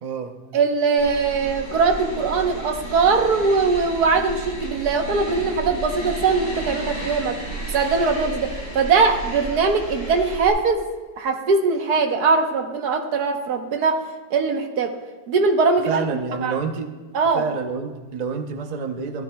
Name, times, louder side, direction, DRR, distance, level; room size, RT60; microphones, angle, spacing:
voice 1, 0.0-0.4 15.9-16.9 17.3-19.2, right 5 dB, 90° right, 6 dB, 0.3 m, -28 dB
voice 2, 0.5-7.4 7.7-10.8 11.2-14.0 14.3-14.9 15.3-16.0 16.4-16.6 17.1-17.4, right 4 dB, 65° right, 5 dB, 1.5 m, -21 dB
sound 1, 1.0-10.5, right 1 dB, 40° left, 4.7 m, -33 dB
15.5 x 13.0 x 2.2 m, 1.4 s
omnidirectional pair, 1.9 m